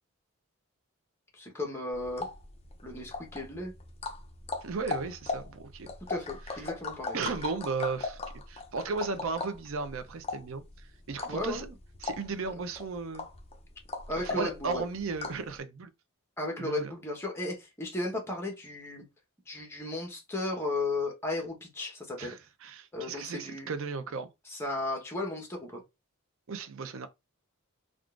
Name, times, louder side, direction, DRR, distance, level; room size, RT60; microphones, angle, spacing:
voice 1, 1.3-2.3 2.8-3.7 6.1-7.2 11.3-11.7 14.1-14.8 16.4-19.0 19.5-22.3 22.9-23.7 24.5-25.8, left 2 dB, 10° left, 1.0 m, -35 dB
sound 1, 1.9-15.5, left 4 dB, 30° left, 0.5 m, -39 dB
voice 2, 4.6-5.9 7.1-8.2 8.5-10.6 11.1-11.7 12.0-13.2 14.2-15.9 16.6-16.9 22.2-24.3 26.5-27.1, right 4 dB, 65° right, 0.5 m, -35 dB
3.7 x 2.4 x 2.4 m
head